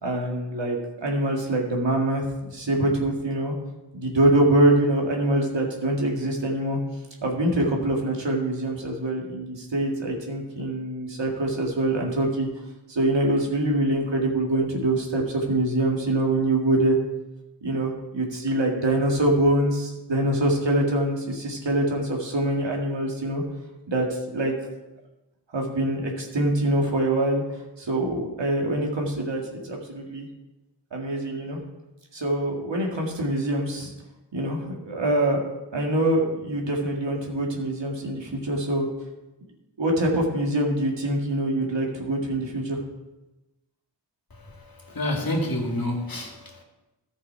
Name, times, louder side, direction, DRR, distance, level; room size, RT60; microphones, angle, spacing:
voice 1, 0.0-2.2 2.5-3.5 3.9-6.8 7.2-12.5 12.9-17.0 17.6-23.4 23.9-24.1 24.3-24.5 25.5-30.3 30.9-31.6 32.1-33.9 34.3-35.4 35.7-38.9 39.8-42.8, right 1 dB, 90° right, 0 dB, 2.0 m, -24 dB
voice 2, 44.3-46.6, left 1 dB, 55° left, 1 dB, 2.0 m, -29 dB
14.0 x 5.7 x 4.6 m, 1.0 s
wide cardioid pair, 55°, 43 cm